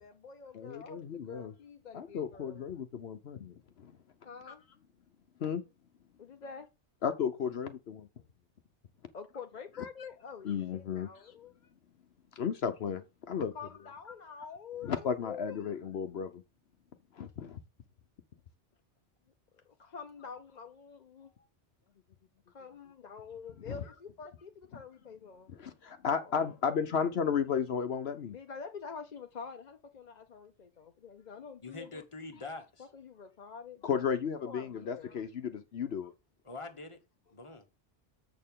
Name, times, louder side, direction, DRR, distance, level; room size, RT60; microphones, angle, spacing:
voice 1, 0.0-2.6 4.2-4.6 6.2-6.7 9.1-11.5 13.5-15.6 19.7-21.3 22.5-25.5 26.2-26.3 28.2-32.0 32.9-34.0 34.4-35.2 36.0-36.1, left 5 dB, 45° left, 0.7 m, -47 dB
voice 2, 0.5-1.5 1.9-3.9 4.5-4.6 5.4-5.6 7.0-8.1 10.4-11.3 12.4-13.5 14.8-16.4 17.1-17.6 23.7-23.8 24.7-24.8 25.5-28.4 33.8-36.1, left 7 dB, 65° left, 1.0 m, -34 dB
voice 3, 31.6-32.9 36.4-37.0 37.3-37.7, left 3 dB, 30° left, 1.2 m, -44 dB
7.5 x 6.6 x 3.6 m
omnidirectional pair, 1.2 m